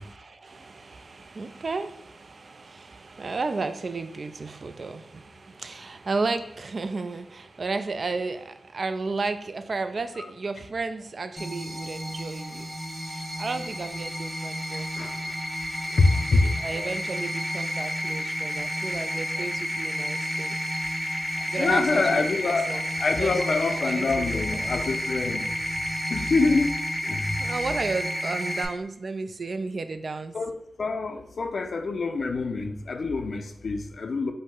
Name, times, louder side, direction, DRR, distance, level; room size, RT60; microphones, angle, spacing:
voice 1, 0.0-12.7 13.1-14.9 16.4-20.6 21.5-22.8 23.2-24.7 27.4-30.4, right 3 dB, 60° right, 9 dB, 0.3 m, -33 dB
sound 1, 11.4-28.7, equal, 5° left, 0.7 m, -31 dB
voice 2, 14.7-15.3 15.9-16.9 21.6-25.5 26.1-27.4 30.3-34.3, left 3 dB, 70° left, 7 dB, 0.4 m, -26 dB
5.1 x 2.0 x 3.6 m, 0.78 s
cardioid pair, 60°, 0 cm